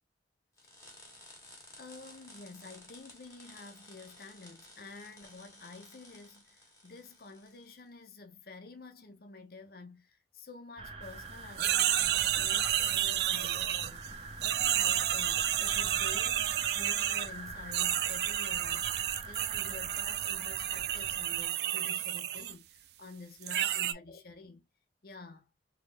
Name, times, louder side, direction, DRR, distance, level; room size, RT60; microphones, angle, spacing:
sound 1, 0.6-7.8, left 1 dB, 15° left, 1.6 m, -55 dB
voice 1, 1.8-14.0 14.3-16.4 16.7-24.7 25.0-25.5, left 3 dB, 55° left, 0.8 m, -50 dB
sound 2, 10.8-21.5, right 3 dB, 30° right, 0.7 m, -44 dB
sound 3, 11.6-14.1 14.4-17.3 17.7-22.5 23.4-23.9, right 12 dB, 60° right, 0.4 m, -31 dB
3.8 x 3.4 x 2.2 m
head